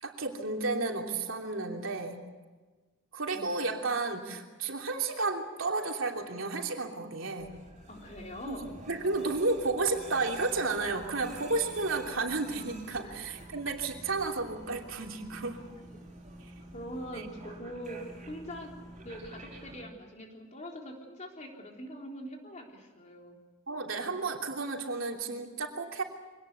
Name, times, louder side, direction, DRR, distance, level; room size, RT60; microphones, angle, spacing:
voice 1, 0.0-2.2 3.1-7.5 8.5-15.6 16.4-16.5 17.1-17.3 23.7-26.0, right 3 dB, 65° right, 2 dB, 3.1 m, -32 dB
voice 2, 3.3-3.6 7.9-8.7 13.0-13.1 16.7-18.0 18.3-23.4, equal, 35° left, 1 dB, 3.7 m, -43 dB
sound 1, 7.4-19.8, right 2 dB, 35° right, 4.6 m, -48 dB
24.5 x 18.5 x 8.3 m, 1.3 s
head